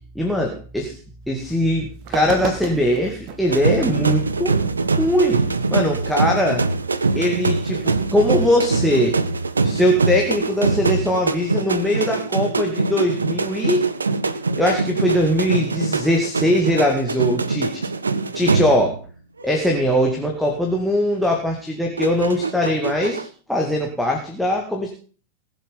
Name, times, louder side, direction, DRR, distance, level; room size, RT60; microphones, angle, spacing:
voice 1, 0.2-0.9 1.3-4.6 5.0-5.4 5.7-6.6 7.1-9.2 9.6-13.9 14.5-17.8 18.3-19.0 19.4-24.9, left 1 dB, ahead, -1 dB, 2.2 m, -21 dB
sound 1, 1.5-1.6 2.0-3.7 4.4-4.5 6.8-7.3, right 7 dB, 45° right, 1.8 m, -33 dB
sound 2, 3.5-19.1 19.4-19.7 22.0-23.3, right 3 dB, 75° right, 0.8 m, -23 dB
20.0 x 7.2 x 5.5 m, 0.40 s
figure-of-eight pair, 90°, 0 cm